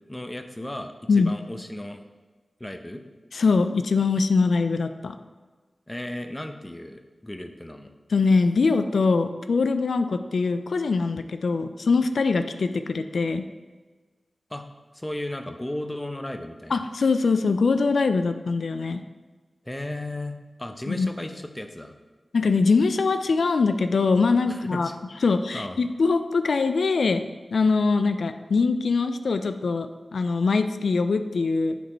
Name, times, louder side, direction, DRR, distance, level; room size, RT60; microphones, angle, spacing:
voice 1, 0.1-2.0 2.6-3.0 5.9-7.9 14.5-14.7 14.9-16.8 19.6-21.9 24.5-25.2 25.5-25.8, left 1 dB, 20° left, 7 dB, 0.7 m, -35 dB
voice 2, 3.3-5.2 8.1-13.5 16.7-19.0 20.9-21.1 22.3-24.9 25.2-27.3 27.5-31.8, left 4 dB, 85° left, 9 dB, 0.3 m, -22 dB
9.2 x 4.1 x 4.5 m, 1.3 s
cardioid pair, 45°, 0 cm